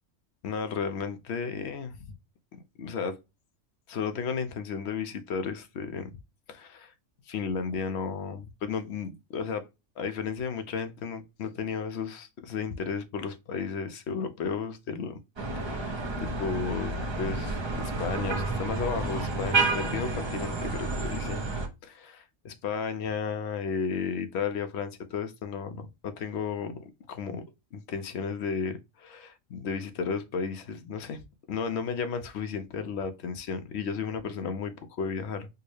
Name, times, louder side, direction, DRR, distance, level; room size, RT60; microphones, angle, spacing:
voice 1, 0.4-2.1 2.5-3.2 3.9-6.1 6.5-6.9 7.3-9.6 10.0-15.2 15.6-21.5 21.8-27.4 27.7-31.2 31.5-35.5, left 6 dB, 65° left, 0.8 m, -33 dB
sound 1, 15.4-21.7, right 3 dB, 35° right, 0.5 m, -30 dB
4.5 x 2.1 x 3.1 m
omnidirectional pair, 1.3 m